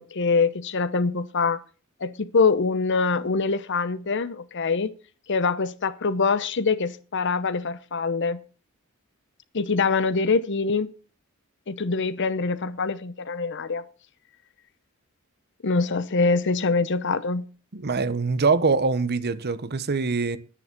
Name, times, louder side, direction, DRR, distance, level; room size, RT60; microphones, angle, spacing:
voice 1, 0.0-1.6 2.0-4.9 5.3-8.4 9.5-10.9 11.7-13.8 15.6-17.5, left 4 dB, 55° left, 0.8 m, -24 dB
voice 2, 17.7-20.4, right 4 dB, 50° right, 0.8 m, -23 dB
9.9 x 9.9 x 5.9 m
head